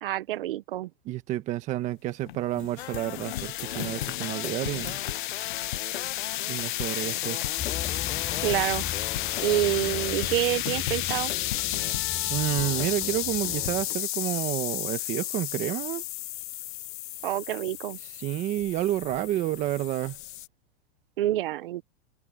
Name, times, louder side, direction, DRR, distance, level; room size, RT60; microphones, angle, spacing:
voice 1, 0.0-0.9 8.4-8.8 9.4-11.3 17.2-18.0 21.2-21.8, right 14 dB, 60° right, 1.0 m, -27 dB
voice 2, 1.0-5.0 6.5-7.4 12.3-16.0 18.2-20.2, right 14 dB, 20° right, 1.5 m, -30 dB
sound 1, 2.3-20.5, left 15 dB, 50° left, 0.8 m, -32 dB
sound 2, 2.8-14.0, left 12 dB, 85° left, 1.3 m, -38 dB
sound 3, 7.6-13.9, left 11 dB, 20° left, 6.0 m, -39 dB
supercardioid pair, 170°, 32 cm